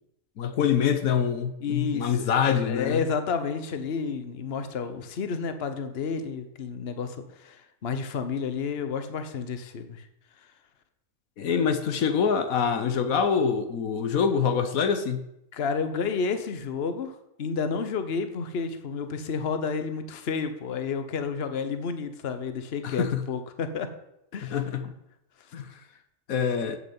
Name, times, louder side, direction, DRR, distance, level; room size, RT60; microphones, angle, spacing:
voice 1, 0.4-3.0 11.4-15.2 22.8-23.2 24.4-24.9 25.5-25.7 26.3-26.8, left 7 dB, 85° left, 9 dB, 1.4 m, -25 dB
voice 2, 1.6-10.1 15.5-23.9 24.3-24.6, left 5 dB, 50° left, 9 dB, 1.2 m, -31 dB
7.9 x 7.7 x 8.4 m, 0.81 s
omnidirectional pair, 1.4 m